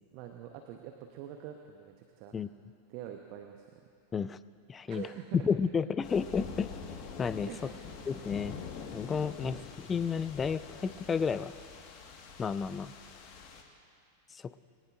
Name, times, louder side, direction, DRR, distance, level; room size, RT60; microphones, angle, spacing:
voice 1, 0.1-2.3 2.9-3.7 4.9-5.3 7.5-7.9 9.4-9.6, right 10 dB, 45° right, 4 dB, 1.0 m, -45 dB
voice 2, 4.7-5.1 5.3-6.7 7.2-7.5 8.1-8.6 8.9-11.5 12.4-12.9 14.3-14.5, left 6 dB, 20° left, 15 dB, 0.4 m, -31 dB
sound 1, 6.0-13.6, left 5 dB, 40° left, 1.6 m, -45 dB
22.0 x 18.0 x 2.6 m, 2.5 s
figure-of-eight pair, 90°, 0 cm